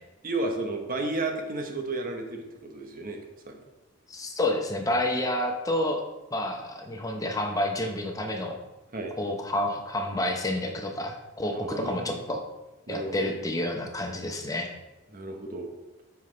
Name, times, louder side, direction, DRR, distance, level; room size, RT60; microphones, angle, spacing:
voice 1, 0.2-3.6 8.9-9.1 11.5-12.1 12.9-13.4 15.1-15.7, right 2 dB, 45° right, 3 dB, 1.0 m, -33 dB
voice 2, 4.1-6.0 6.3-8.6 9.2-12.4 12.9-14.7, left 1 dB, 20° left, 3 dB, 0.9 m, -29 dB
8.9 x 5.8 x 3.3 m, 1.0 s
head